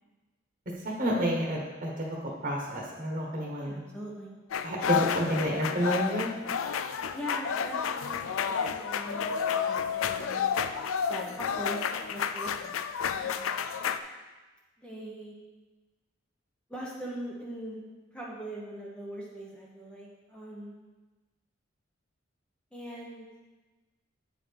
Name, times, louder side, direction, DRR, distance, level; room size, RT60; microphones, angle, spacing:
voice 1, 0.8-3.8 4.6-6.3, equal, 40° right, -2 dB, 1.2 m, -30 dB
voice 2, 3.6-4.3 7.1-10.4 11.1-11.8 12.1-12.8 13.2-13.5 14.8-15.3 16.7-17.8 18.1-20.8 22.7-23.3, right 1 dB, 5° left, -4 dB, 0.8 m, -41 dB
sound 1, 4.5-14.0, left 7 dB, 85° left, 0.4 m, -31 dB
8.7 x 4.8 x 5.1 m, 1.2 s
head